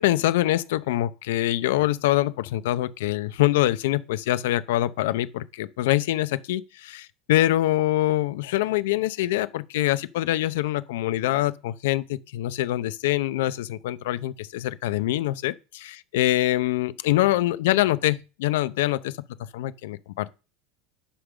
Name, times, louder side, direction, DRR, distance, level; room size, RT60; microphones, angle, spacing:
voice 1, 0.0-19.1 19.5-20.3, left 15 dB, 90° left, 0.7 m, -24 dB
10.0 x 3.8 x 6.2 m
supercardioid pair, 170°, 0 cm